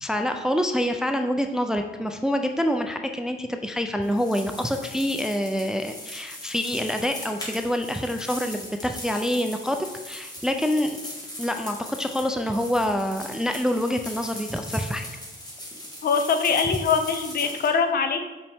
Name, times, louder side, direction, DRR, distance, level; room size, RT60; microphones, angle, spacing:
voice 1, 0.0-9.8 10.0-10.9 11.4-15.1, equal, 5° right, 6 dB, 0.4 m, -26 dB
sound 1, 4.0-17.7, left 1 dB, 20° left, 1.7 m, -40 dB
voice 2, 16.0-18.2, left 5 dB, 50° left, 7 dB, 0.6 m, -23 dB
5.4 x 5.3 x 3.5 m, 1.1 s
cardioid pair, 90°, 20 cm